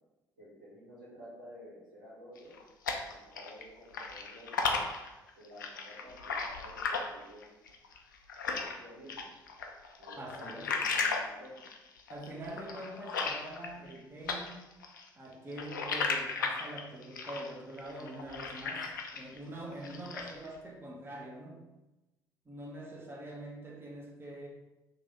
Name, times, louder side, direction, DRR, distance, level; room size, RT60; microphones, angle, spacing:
voice 1, 0.4-2.6 3.0-4.6 5.3-7.5 8.7-9.3 10.0-11.7, equal, 85° right, -8 dB, 1.4 m, -52 dB
sound 1, 2.4-3.6 3.9-8.8 9.1-14.0 14.3-19.4 19.7-20.5, left 4 dB, 85° left, 0.4 m, -35 dB
voice 2, 10.2-10.8 12.1-14.6 15.2-21.6 22.4-24.5, right 1 dB, 20° right, -2 dB, 0.9 m, -44 dB
3.2 x 2.6 x 3.9 m, 1.1 s
figure-of-eight pair, 55°, 10 cm